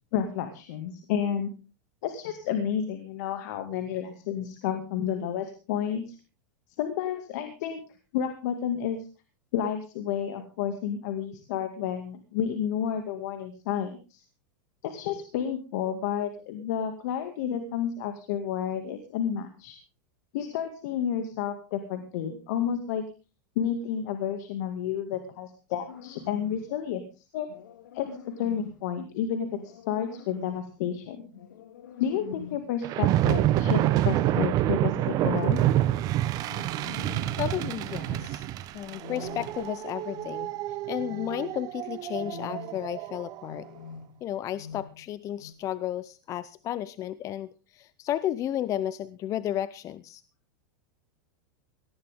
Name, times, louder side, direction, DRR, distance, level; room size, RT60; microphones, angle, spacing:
voice 1, 0.1-1.5 2.0-6.1 6.8-7.8 8.1-9.1 9.5-14.2 14.8-19.8 20.3-23.0 23.6-27.5 27.9-31.3 32.0-35.6, left 9 dB, 65° left, 7 dB, 2.2 m, -31 dB
sound 1, 25.9-26.7 27.5-28.8 29.5-30.8 31.3-32.7 33.2-34.5 34.9-36.0 36.4-37.5 37.8-38.4 38.9-39.8 40.1-40.6 41.0-41.7 42.1-43.0 43.4-44.2 44.5-45.1 45.4-45.5, left 8 dB, 90° left, 2.1 m, -44 dB
sound 2, 32.8-43.4, right 14 dB, 40° right, 1.0 m, -27 dB
voice 2, 37.4-38.5 38.7-40.5 40.9-43.7 44.2-50.2, left 12 dB, 35° left, 16 dB, 0.7 m, -33 dB
18.5 x 14.5 x 3.7 m, 0.32 s
supercardioid pair, 130°, 10 cm